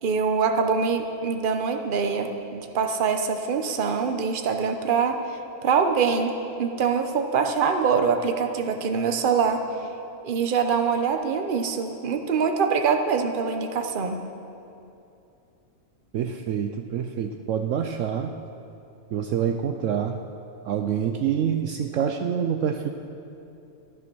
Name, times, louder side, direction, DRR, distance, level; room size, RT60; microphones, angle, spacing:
voice 1, 0.0-5.2 5.6-9.6 10.2-14.2, right 5 dB, 40° right, 5 dB, 0.9 m, -24 dB
voice 2, 16.1-18.4 19.1-20.2 20.6-22.9, right 8 dB, 70° right, 6 dB, 0.9 m, -26 dB
13.5 x 11.0 x 6.2 m, 2.8 s
omnidirectional pair, 1.5 m